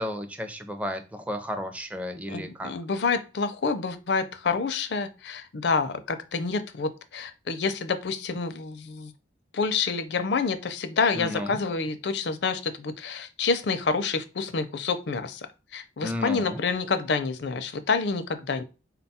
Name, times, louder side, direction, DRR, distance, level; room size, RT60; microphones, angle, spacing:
voice 1, 0.0-2.7 11.1-11.6 16.0-16.6, left 1 dB, 10° right, 7 dB, 0.5 m, -33 dB
voice 2, 2.3-9.1 9.5-15.5 15.7-18.6, left 4 dB, 70° left, 10 dB, 0.5 m, -28 dB
4.0 x 2.3 x 4.1 m, 0.31 s
head